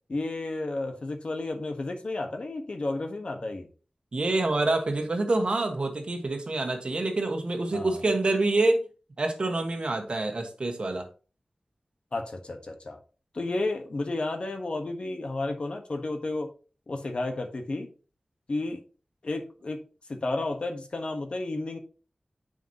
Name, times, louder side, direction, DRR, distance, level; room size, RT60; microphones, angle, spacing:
voice 1, 0.1-3.7 7.7-8.0 12.1-13.0 13.3-16.5 16.9-17.9 18.5-18.8 19.2-19.8 20.1-21.8, left 2 dB, 60° left, 4 dB, 1.2 m, -32 dB
voice 2, 4.1-8.8 9.2-11.1, right 2 dB, 60° right, 5 dB, 1.4 m, -26 dB
9.2 x 5.1 x 2.9 m, 0.36 s
wide cardioid pair, 90°, 2 cm